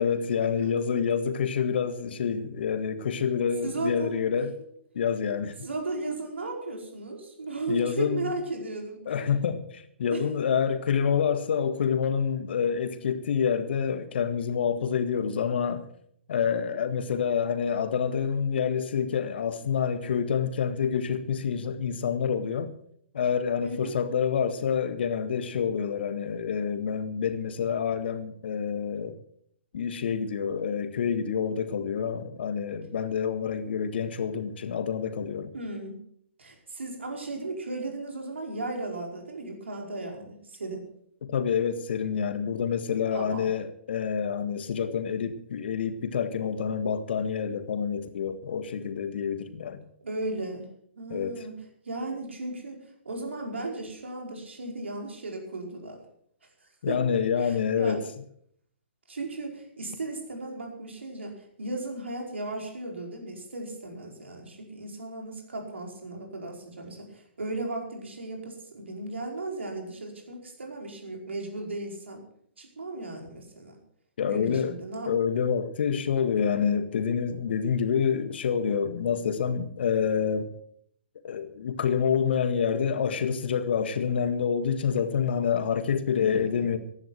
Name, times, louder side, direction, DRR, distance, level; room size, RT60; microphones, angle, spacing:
voice 1, 0.0-4.5 5.0-5.6 7.7-8.2 9.1-15.9 16.3-22.7 23.1-29.2 29.7-35.5 41.3-49.8 51.1-51.4 56.8-58.0 74.2-74.7 75.1-80.5 81.2-86.8, left 7 dB, 60° left, 1.7 m, -27 dB
voice 2, 3.6-4.1 5.6-9.0 10.1-10.2 23.6-24.0 35.5-36.0 36.4-40.9 43.1-43.5 50.0-50.7 50.9-51.5 51.8-52.8 53.0-56.0 56.6-57.0 57.4-58.0 59.1-72.2 72.6-73.8 74.3-75.1 86.1-86.8, right 2 dB, 80° right, 4.9 m, -36 dB
15.0 x 11.0 x 6.0 m
figure-of-eight pair, 125°, 6 cm